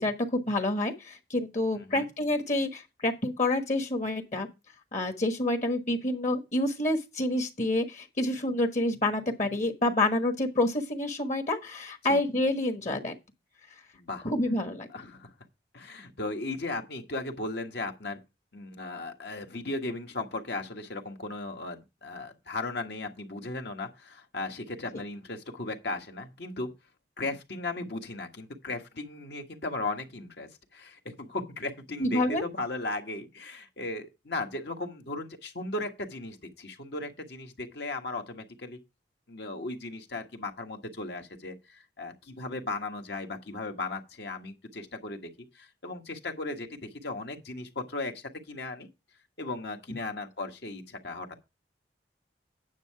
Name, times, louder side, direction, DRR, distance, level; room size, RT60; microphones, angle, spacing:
voice 1, 0.0-4.5 4.9-13.1 14.2-14.9 32.0-32.4, left 1 dB, 45° left, 1.3 m, -28 dB
voice 2, 1.7-2.1 12.0-12.2 13.9-14.3 14.9-15.3 15.7-18.2 18.5-26.7 27.2-38.8 39.3-45.3 45.5-48.9 49.4-51.5, left 2 dB, 65° left, 1.5 m, -36 dB
9.5 x 6.5 x 4.6 m
head